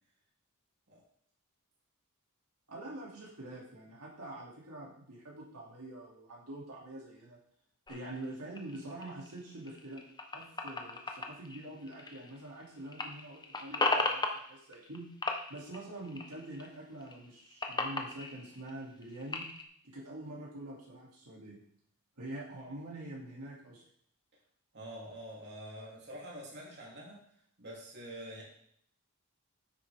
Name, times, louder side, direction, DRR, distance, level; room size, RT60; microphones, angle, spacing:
voice 1, 2.7-7.4 7.9-10.0 10.3-15.0 15.5-19.4 19.9-21.6 22.2-23.8, right 1 dB, 90° right, -4 dB, 2.7 m, -45 dB
sound 1, 7.9-12.6 12.9-15.0 15.2-16.7 17.0-19.6, left 3 dB, 20° left, 0.9 m, -36 dB
voice 2, 24.7-27.2 27.6-28.4, equal, 50° right, -4 dB, 3.1 m, -46 dB
9.7 x 8.4 x 3.6 m, 0.68 s
head